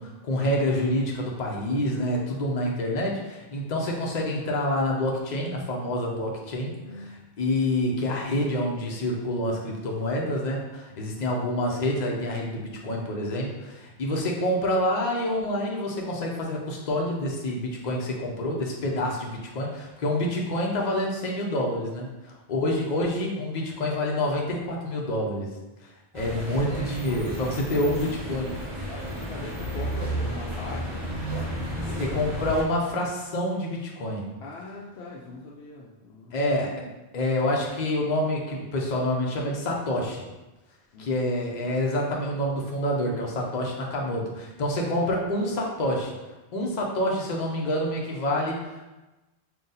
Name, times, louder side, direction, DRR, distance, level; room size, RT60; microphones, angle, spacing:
voice 1, 0.0-22.1 22.5-25.5 26.1-28.5 32.0-34.3 36.3-36.9 37.1-40.3 41.0-46.1 46.5-48.9, left 1 dB, 50° left, -1 dB, 0.8 m, -27 dB
voice 2, 6.8-7.1 27.7-27.8 28.9-32.4 34.4-36.4 40.9-41.4, left 3 dB, 85° left, -4 dB, 0.8 m, -41 dB
sound 1, 26.1-32.6, right 1 dB, 30° right, 0.9 m, -32 dB
3.9 x 2.4 x 3.9 m, 1.1 s
omnidirectional pair, 1.0 m